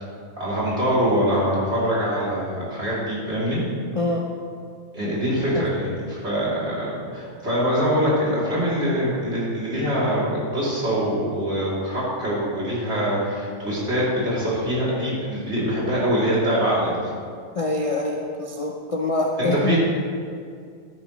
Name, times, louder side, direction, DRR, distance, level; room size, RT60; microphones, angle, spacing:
voice 1, 0.4-3.6 4.9-16.9 19.4-19.8, equal, 40° right, -8 dB, 3.3 m, -24 dB
voice 2, 3.9-4.3 5.5-5.7 17.5-19.8, left 2 dB, 60° left, -1 dB, 0.3 m, -25 dB
13.5 x 9.5 x 3.1 m, 2.2 s
omnidirectional pair, 1.7 m